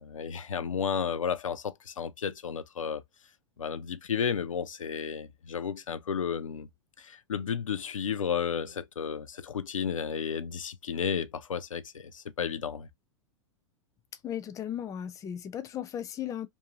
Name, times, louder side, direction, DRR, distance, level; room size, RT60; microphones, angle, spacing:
voice 1, 0.0-3.0 3.6-6.7 7.0-12.9, left 7 dB, 85° left, 0.4 m, -33 dB
voice 2, 14.2-16.5, left 10 dB, 20° left, 0.4 m, -36 dB
2.6 x 2.5 x 2.9 m
figure-of-eight pair, 95°, 17 cm